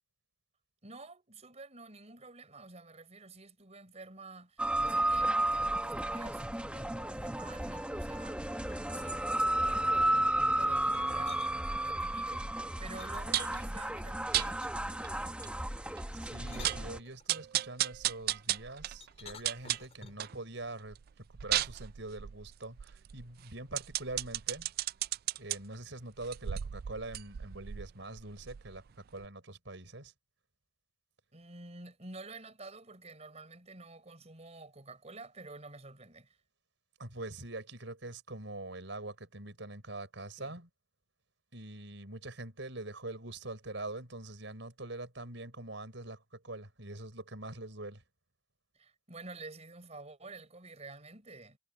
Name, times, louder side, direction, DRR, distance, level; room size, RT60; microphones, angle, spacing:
voice 1, 0.8-14.6 31.3-36.4 40.4-40.6 48.7-51.6, right 3 dB, 35° right, 4.6 m, -50 dB
sound 1, 4.6-17.0, right 1 dB, 5° right, 1.2 m, -33 dB
sound 2, 10.8-11.5 13.0-13.9 14.6-15.0 16.1-17.5 19.0-20.3, left 5 dB, 35° left, 3.2 m, -53 dB
sound 3, 13.3-13.6 14.3-14.5 15.0-15.1 15.4-15.5 16.0-16.1 16.4-16.9 17.3-20.4 20.8-25.6 26.2-28.9 29.2-29.3, right 13 dB, 50° right, 0.3 m, -35 dB
voice 2, 16.2-24.7 25.4-30.1 37.0-40.7 41.5-48.0, right 2 dB, 70° right, 6.3 m, -44 dB
head